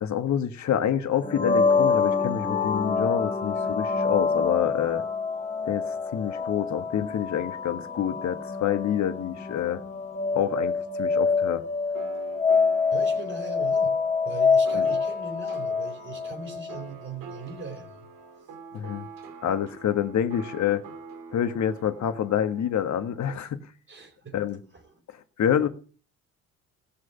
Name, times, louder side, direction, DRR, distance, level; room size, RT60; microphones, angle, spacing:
voice 1, 0.0-5.0 5.6-9.8 10.3-11.6 14.7-14.8 18.7-19.1 19.4-20.8 21.3-23.7 24.3-24.6 25.4-25.7, left 9 dB, 45° left, 9 dB, 1.6 m, -27 dB
sound 1, 1.2-16.8, left 5 dB, 15° left, 2.6 m, -26 dB
sound 2, 11.9-23.3, right 5 dB, 55° right, 2.5 m, -46 dB
voice 2, 12.9-13.9 14.2-18.0 23.9-24.4 24.7-25.0, right 4 dB, 35° right, -1 dB, 4.4 m, -40 dB
17.5 x 6.4 x 5.8 m, 0.40 s
hypercardioid pair, 60°, 38 cm